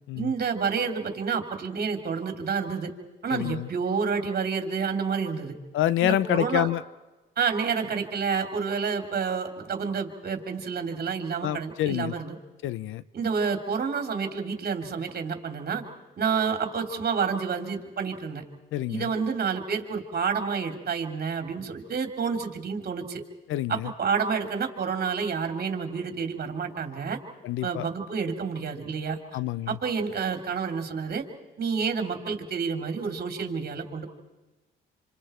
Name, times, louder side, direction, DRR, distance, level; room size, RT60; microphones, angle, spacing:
voice 1, 0.1-2.9 3.2-5.5 6.0-6.7 7.4-12.4 13.1-15.8 16.2-18.4 18.9-23.2 23.7-27.2 27.6-29.2 29.7-31.2 31.6-34.1, right 5 dB, 50° right, 3.1 m, -29 dB
voice 2, 3.3-3.7 5.7-6.8 11.4-12.1 12.6-13.0 18.7-19.1 23.5-23.9 27.4-27.9 29.3-29.8, left 13 dB, 85° left, 0.8 m, -27 dB
27.5 x 26.5 x 4.5 m
cardioid pair, 90°, 20 cm